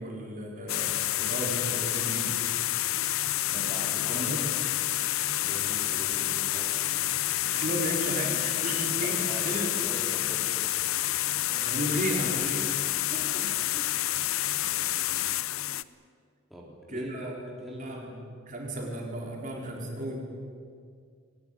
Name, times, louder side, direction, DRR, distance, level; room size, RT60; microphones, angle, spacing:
voice 1, 0.0-2.4 4.1-4.4 7.4-9.8 11.5-12.8 13.1-13.5 14.1-14.2 15.1-15.3 15.7-15.8 16.9-17.3 17.8-18.1 18.5-20.2, right 1 dB, 40° right, -1 dB, 4.5 m, -34 dB
sound 1, 0.7-15.8, left 14 dB, 85° left, 0.6 m, -29 dB
voice 2, 3.5-4.3 5.4-6.8 9.0-10.5 13.7-13.9 16.5-17.1 17.6-18.0, equal, ahead, -4 dB, 4.2 m, -42 dB
22.0 x 19.5 x 9.9 m, 2.2 s
head